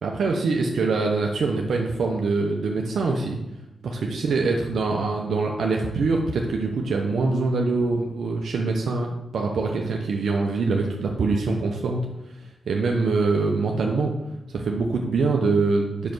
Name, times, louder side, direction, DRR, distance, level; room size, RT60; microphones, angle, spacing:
voice 1, 0.0-3.4 3.8-12.0 12.4-14.1 14.5-16.1, right 3 dB, 75° right, 1 dB, 0.8 m, -24 dB
5.8 x 5.1 x 6.1 m, 0.94 s
cardioid pair, 55°, 0 cm